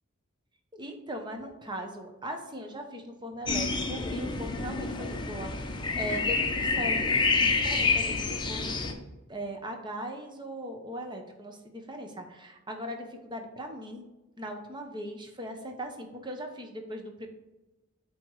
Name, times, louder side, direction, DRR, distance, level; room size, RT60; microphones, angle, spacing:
voice 1, 0.7-14.1 14.4-17.3, equal, 25° right, 3 dB, 1.0 m, -39 dB
sound 1, 3.5-8.9, left 4 dB, 25° left, 0.8 m, -28 dB
8.3 x 3.1 x 4.8 m, 1.0 s
head